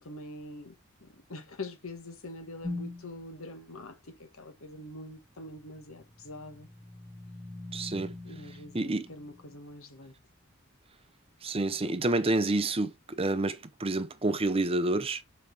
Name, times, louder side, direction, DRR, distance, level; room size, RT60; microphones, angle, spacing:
voice 1, 0.0-6.7 8.2-10.1, left 2 dB, 70° left, 1.7 m, -44 dB
sound 1, 2.6-3.2 6.1-9.6, left 2 dB, 5° right, 2.2 m, -42 dB
voice 2, 7.7-8.1 8.7-9.1 11.4-15.2, right 2 dB, 25° right, 0.7 m, -28 dB
6.9 x 5.1 x 3.5 m
head